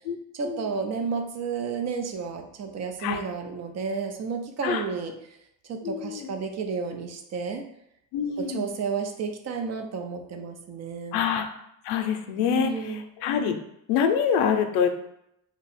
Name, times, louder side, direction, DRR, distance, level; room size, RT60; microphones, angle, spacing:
voice 1, 0.3-5.1 5.7-7.6 8.4-11.2 12.4-13.0, right 5 dB, 45° right, 5 dB, 0.6 m, -31 dB
voice 2, 5.8-6.3 8.1-8.7 11.1-11.5 11.8-13.5 13.9-14.9, left 7 dB, 85° left, 6 dB, 0.5 m, -26 dB
2.8 x 2.2 x 4.1 m, 0.78 s
cardioid pair, 100°, 38 cm